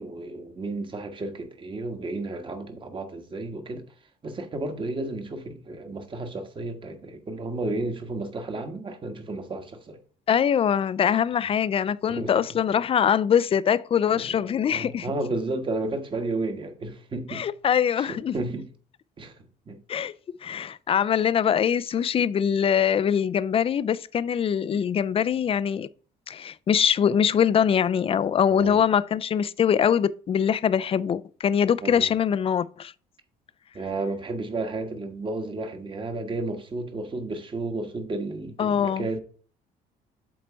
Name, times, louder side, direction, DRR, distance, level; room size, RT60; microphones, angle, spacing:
voice 1, 0.0-3.8 4.2-10.0 12.1-12.6 14.1-17.5 18.0-18.7 19.2-19.8 28.6-28.8 31.8-32.1 33.7-39.2, right 2 dB, 30° right, 1.4 m, -32 dB
voice 2, 10.3-15.1 17.3-18.3 19.9-20.1 20.4-25.9 26.3-32.9 38.6-39.0, left 8 dB, 35° left, 0.4 m, -23 dB
7.7 x 4.0 x 4.5 m
cardioid pair, 110°, 17 cm